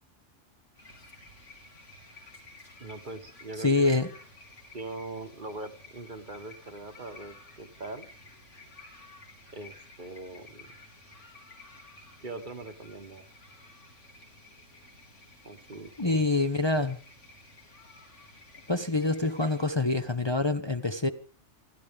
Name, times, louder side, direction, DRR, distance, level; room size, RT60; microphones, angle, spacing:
sound 1, 0.7-19.6, left 2 dB, 85° left, 3.8 m, -53 dB
voice 1, 2.8-3.9 4.7-8.1 9.5-10.7 12.2-13.3 15.4-16.2, right 2 dB, 45° right, 1.4 m, -41 dB
voice 2, 3.6-4.1 16.0-17.0 18.7-21.1, left 3 dB, 25° left, 0.9 m, -26 dB
28.5 x 11.5 x 3.7 m
omnidirectional pair, 1.2 m